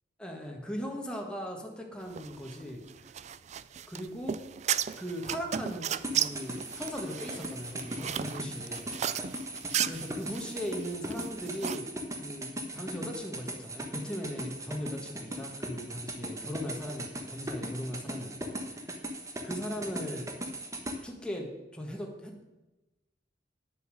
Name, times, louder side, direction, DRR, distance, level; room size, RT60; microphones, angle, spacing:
voice 1, 0.2-2.8 3.1-3.2 3.9-4.4 5.0-8.9 9.8-11.9 12.1-19.0 19.4-20.3 21.0-22.4, equal, 5° left, 0 dB, 1.5 m, -39 dB
sound 1, 2.1-11.8, right 9 dB, 40° right, 0.4 m, -35 dB
sound 2, 6.0-21.0, right 1 dB, 20° right, 1.2 m, -38 dB
10.5 x 6.9 x 6.4 m, 1.0 s
head